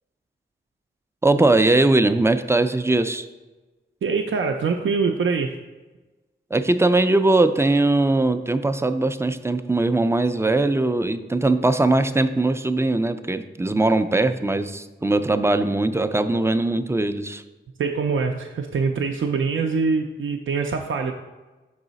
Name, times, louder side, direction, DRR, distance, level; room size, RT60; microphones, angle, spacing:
voice 1, 1.2-3.3 6.5-17.4, right 2 dB, 15° right, 10 dB, 0.3 m, -20 dB
voice 2, 4.0-5.6 17.8-21.1, right 5 dB, 80° right, 3 dB, 0.4 m, -24 dB
6.2 x 4.8 x 4.0 m, 1.2 s
wide cardioid pair, 75°, 20 cm